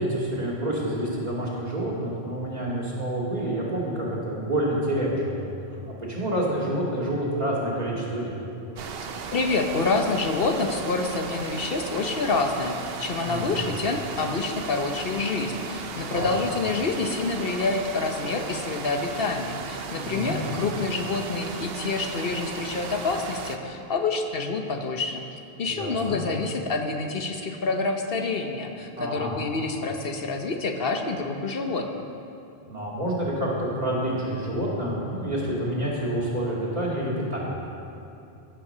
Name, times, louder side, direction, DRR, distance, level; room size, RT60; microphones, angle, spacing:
voice 1, 0.0-8.3 13.2-13.6 16.1-16.3 20.0-20.4 25.7-26.2 28.9-29.4 32.7-37.5, right 1 dB, 40° right, -6 dB, 2.6 m, -28 dB
sound 1, 8.8-23.6, right 5 dB, 70° right, 0.9 m, -36 dB
voice 2, 9.3-25.2 25.6-31.9, left 3 dB, 65° left, 4 dB, 1.1 m, -27 dB
16.0 x 5.8 x 6.7 m, 2.7 s
omnidirectional pair, 1.0 m